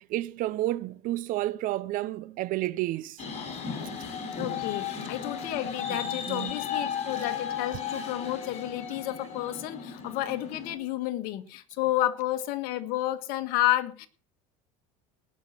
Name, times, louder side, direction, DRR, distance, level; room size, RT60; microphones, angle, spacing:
voice 1, 0.0-3.2 5.9-6.6, right 16 dB, 55° right, 0.7 m, -31 dB
sound 1, 3.2-10.8, left 7 dB, 40° left, 6.4 m, -35 dB
voice 2, 4.3-14.1, left 14 dB, 65° left, 1.7 m, -31 dB
19.0 x 6.4 x 5.9 m
supercardioid pair, 95°, 17 cm